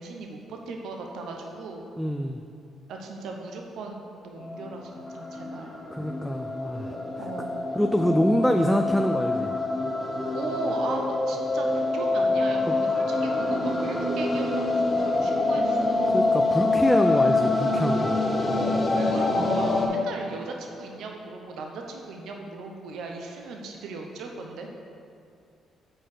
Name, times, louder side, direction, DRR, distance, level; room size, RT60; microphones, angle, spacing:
voice 1, 0.0-1.9 2.9-5.7 7.2-7.5 10.3-16.3 18.5-24.7, right 3 dB, 80° right, 2 dB, 0.7 m, -37 dB
voice 2, 2.0-2.4 5.9-7.0 7.7-9.5 12.7-12.8 16.1-18.2, equal, ahead, 4 dB, 0.4 m, -25 dB
sound 1, 4.4-19.9, left 2 dB, 40° left, 1.4 m, -26 dB
6.0 x 4.6 x 6.4 m, 2.5 s
cardioid pair, 90°, 0 cm